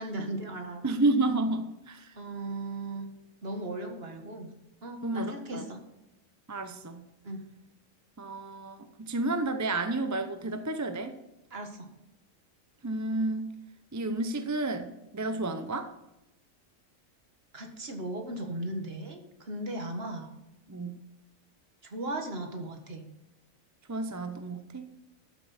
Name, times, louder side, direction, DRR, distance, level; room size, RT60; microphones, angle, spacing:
voice 1, 0.0-0.9 2.2-3.1 3.4-5.8 7.2-7.4 11.5-11.9 17.5-20.3 21.8-23.1, right 1 dB, 50° right, 4 dB, 1.9 m, -37 dB
voice 2, 0.8-2.1 5.0-5.6 6.5-7.0 8.2-11.1 12.8-13.5 13.9-15.9 20.0-20.1 20.7-21.0 23.9-24.9, right 2 dB, 20° right, 8 dB, 0.6 m, -31 dB
12.5 x 7.6 x 4.3 m, 0.95 s
omnidirectional pair, 1.4 m